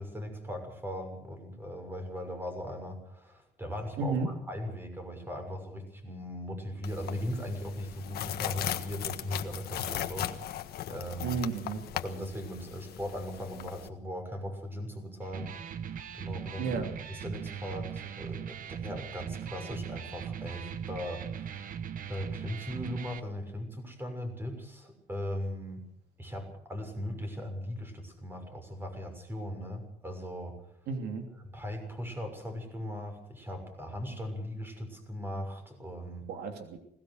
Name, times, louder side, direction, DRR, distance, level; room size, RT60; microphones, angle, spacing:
voice 1, 0.0-10.5 10.9-11.4 11.9-15.5 15.9-16.8 17.1-21.8 22.1-25.8 26.2-30.5 31.4-36.3, equal, 15° right, 5 dB, 6.4 m, -39 dB
voice 2, 4.0-4.3 11.2-11.8 16.6-16.9 30.9-31.3 36.3-36.8, right 4 dB, 80° right, 5 dB, 3.0 m, -32 dB
sound 1, 6.8-13.9, left 12 dB, 65° left, 1.5 m, -38 dB
Electric guitar, 15.2-23.2, right 8 dB, 55° right, 1.4 m, -40 dB
21.0 x 19.0 x 6.5 m, 0.74 s
cardioid pair, 110°, 17 cm